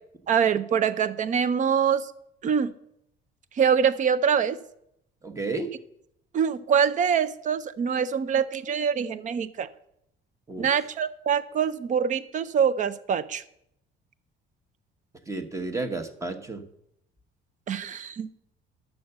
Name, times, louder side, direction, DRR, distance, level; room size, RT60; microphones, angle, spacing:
voice 1, 0.3-2.1 2.4-2.7 3.6-4.6 6.3-9.7 10.6-13.4 17.7-18.4, right 7 dB, 40° right, 15 dB, 0.6 m, -24 dB
voice 2, 5.2-5.7 10.5-10.7 15.3-16.6, right 3 dB, 15° right, 8 dB, 1.0 m, -32 dB
10.0 x 6.9 x 6.6 m, 0.76 s
cardioid pair, 140°, 20 cm